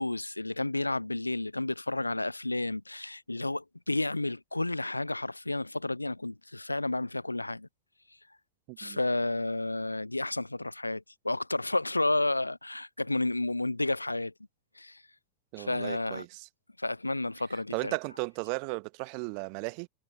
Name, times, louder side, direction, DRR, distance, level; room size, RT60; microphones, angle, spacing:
voice 1, 0.0-7.7 8.8-14.3 14.8-15.0 15.6-16.3 16.8-17.9, left 2 dB, 85° left, 0.4 m, -31 dB
voice 2, 8.7-9.0 15.5-16.5 17.7-19.9, right 40 dB or more, 45° right, 1.1 m, -35 dB
figure-of-eight pair, 90°, 0 cm